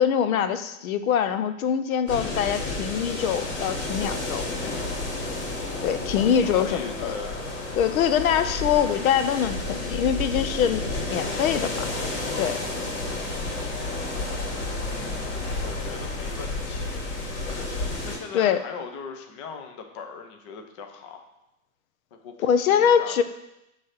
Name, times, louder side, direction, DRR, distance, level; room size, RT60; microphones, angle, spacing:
voice 1, 0.0-4.4 5.8-7.1 7.8-11.9 12.4-12.6 18.3-18.6 22.4-23.2, left 8 dB, 85° left, 10 dB, 0.8 m, -23 dB
sound 1, 2.1-18.2, left 2 dB, 55° left, 2.3 m, -31 dB
voice 2, 6.2-7.4 14.8-16.9 17.5-17.7 18.0-21.3 22.1-23.2, left 5 dB, 25° left, 4 dB, 0.4 m, -40 dB
9.3 x 3.3 x 6.4 m, 0.91 s
supercardioid pair, 165°, 41 cm